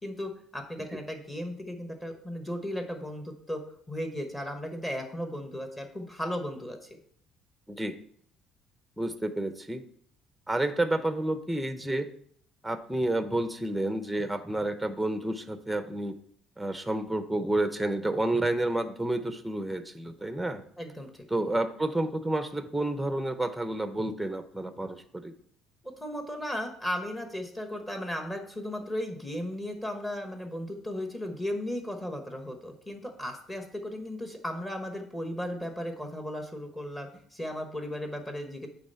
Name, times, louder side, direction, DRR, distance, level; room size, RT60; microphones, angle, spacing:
voice 1, 0.0-3.6 3.9-6.8 20.8-21.2 26.0-38.7, left 1 dB, 15° left, 4 dB, 1.1 m, -36 dB
voice 2, 9.0-9.8 10.5-12.1 12.6-16.2 16.6-20.6 21.3-25.3, right 1 dB, 5° right, 9 dB, 0.6 m, -30 dB
8.7 x 3.4 x 5.6 m, 0.64 s
cardioid pair, 120°, 0 cm